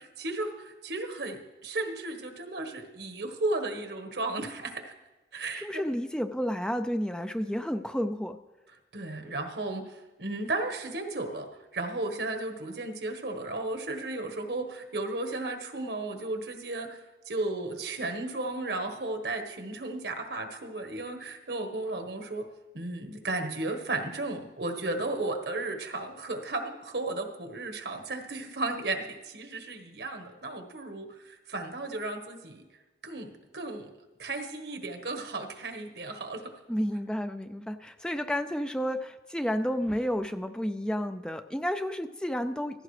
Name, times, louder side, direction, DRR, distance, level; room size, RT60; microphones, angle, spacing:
voice 1, 0.0-4.9 5.3-5.8 8.9-22.5 22.7-32.6 33.0-33.9 34.2-36.5, right 2 dB, 75° right, 4 dB, 1.4 m, -34 dB
voice 2, 5.6-8.4 36.7-42.8, equal, 5° left, 8 dB, 0.3 m, -31 dB
15.5 x 15.0 x 3.3 m, 1.1 s
head